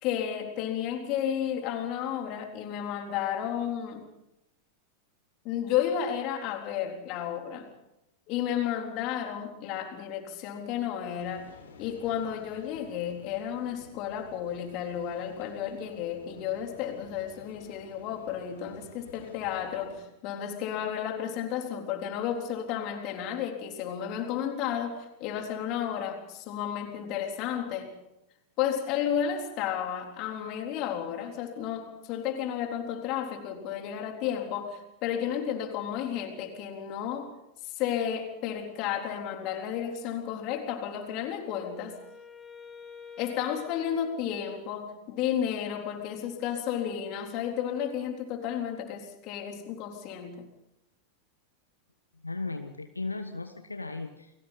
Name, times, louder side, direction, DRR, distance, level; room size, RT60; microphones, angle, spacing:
voice 1, 0.0-4.0 5.4-7.7 8.3-11.5 11.8-27.9 28.6-37.3 37.8-42.0 43.2-50.5, left 9 dB, 40° left, 3 dB, 3.7 m, -32 dB
sound 1, 11.2-20.0, left 5 dB, 65° left, 4.2 m, -52 dB
Wind instrument woodwind instrument, 41.2-45.1, left 6 dB, 15° left, 1.9 m, -49 dB
voice 2, 52.2-54.3, left 3 dB, 80° left, 7 dB, 1.3 m, -36 dB
30.0 x 21.5 x 4.2 m, 0.88 s
figure-of-eight pair, 90°, 0 cm